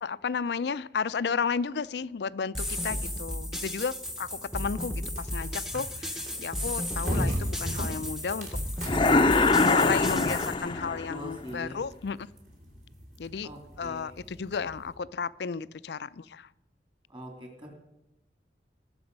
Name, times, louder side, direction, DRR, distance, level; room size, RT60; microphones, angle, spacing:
voice 1, 0.0-8.5 9.1-12.3 13.2-13.5 13.8-16.5, left 5 dB, 70° left, 17 dB, 0.4 m, -33 dB
sound 1, 2.5-10.5, left 1 dB, 5° right, 0.9 m, -34 dB
sound 2, 4.0-15.0, equal, 45° right, 3.3 m, -38 dB
sound 3, 8.8-11.2, left 3 dB, 25° left, 0.6 m, -23 dB
voice 2, 10.8-11.8 13.4-14.1 17.1-17.7, equal, 25° right, 2 dB, 2.8 m, -43 dB
20.0 x 7.0 x 5.3 m, 0.91 s
head